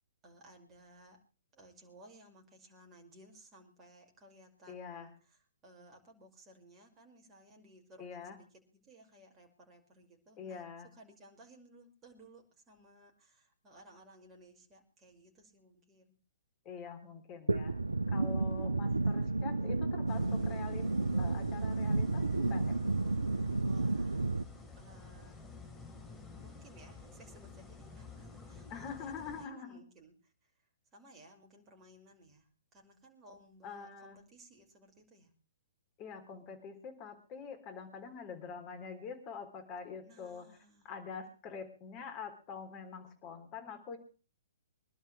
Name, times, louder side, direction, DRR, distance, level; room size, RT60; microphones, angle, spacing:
voice 1, 0.2-1.2 1.5-8.5 8.7-16.2 18.8-19.3 23.6-24.4 24.8-25.4 26.4-35.3 40.0-40.9, right 1 dB, 20° right, 1 dB, 5.7 m, -59 dB
voice 2, 4.7-5.1 8.0-8.4 10.4-10.9 16.7-17.8 18.1-20.9 21.2-22.8 28.7-29.8 33.6-34.2 36.0-40.5 40.8-44.0, left 6 dB, 30° left, 7 dB, 3.7 m, -45 dB
sound 1, 17.5-24.4, right 2 dB, 80° right, 0.7 m, -32 dB
sound 2, 20.1-29.5, left 3 dB, 15° left, 3.5 m, -51 dB
26.0 x 12.0 x 3.4 m, 0.35 s
figure-of-eight pair, 120°, 0 cm